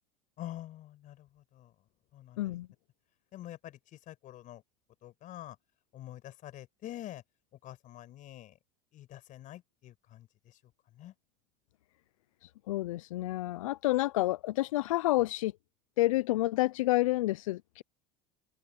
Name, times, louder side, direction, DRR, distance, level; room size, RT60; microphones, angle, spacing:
voice 1, 0.4-1.7 2.1-2.5 3.3-3.8 4.1-4.6 5.0-5.6 5.9-7.2 7.6-8.5 8.9-10.3 11.0-11.1, left 13 dB, 50° left, 6.6 m, -46 dB
voice 2, 2.4-2.7 12.4-15.5 16.0-17.8, left 17 dB, 90° left, 0.4 m, -29 dB
open air
hypercardioid pair, 90°, 17 cm